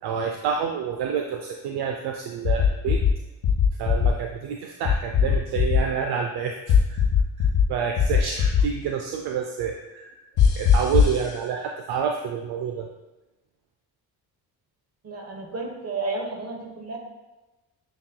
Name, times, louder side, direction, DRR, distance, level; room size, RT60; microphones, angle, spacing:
voice 1, 0.0-3.0 3.8-7.0 7.4-10.2 10.5-12.9, right 7 dB, 65° right, 3 dB, 0.5 m, -28 dB
sound 1, 2.4-3.1 3.4-4.1 4.8-5.8 6.7-7.6 8.0-8.6 10.4-11.2, left 8 dB, 70° left, 0.8 m, -19 dB
voice 2, 15.0-17.0, right 3 dB, 35° right, 2 dB, 1.1 m, -32 dB
7.5 x 2.9 x 2.2 m, 1.1 s
supercardioid pair, 55°, 43 cm